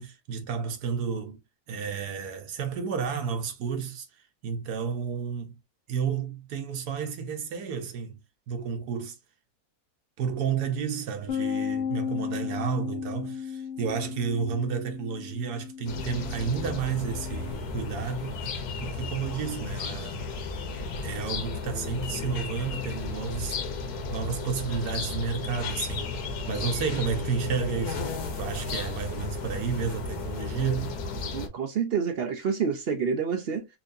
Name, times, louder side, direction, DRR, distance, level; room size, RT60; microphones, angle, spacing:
voice 1, 0.0-1.4 1.7-4.1 4.4-5.6 5.9-8.2 8.5-9.2 10.2-18.4 18.8-20.2 21.0-23.6 24.1-31.0, right 6 dB, 85° right, 1.4 m, -31 dB
Bass guitar, 11.3-17.5, left 7 dB, 55° left, 1.0 m, -35 dB
sound 1, 15.9-31.5, left 4 dB, 80° left, 1.4 m, -34 dB
voice 2, 31.3-33.7, right 6 dB, 60° right, 0.6 m, -28 dB
4.4 x 2.6 x 2.6 m
omnidirectional pair, 1.6 m